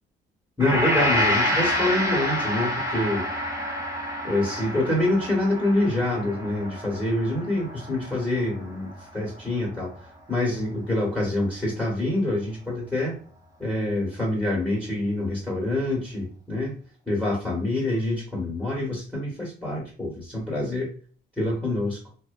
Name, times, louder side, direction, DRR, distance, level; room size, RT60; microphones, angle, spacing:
voice 1, 0.6-3.2 4.2-9.9 10.3-13.1 13.6-16.7 17.1-20.9 21.4-22.0, left 1 dB, 5° left, -3 dB, 1.0 m, -26 dB
Gong, 0.6-9.0 9.4-9.5, left 1 dB, 15° right, 0.9 m, -28 dB
2.6 x 2.2 x 2.2 m, 0.41 s
cardioid pair, 90°, 20 cm